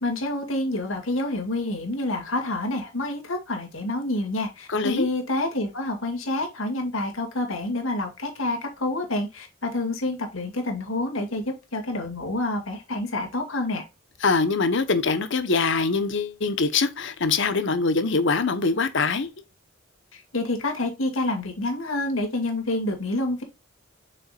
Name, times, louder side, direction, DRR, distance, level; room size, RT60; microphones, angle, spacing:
voice 1, 0.0-11.4 11.7-13.8 20.3-23.4, left 2 dB, 80° left, 2.3 m, -28 dB
voice 2, 4.7-5.1 14.2-19.3, left 4 dB, 65° left, 1.0 m, -23 dB
7.2 x 5.6 x 2.4 m
head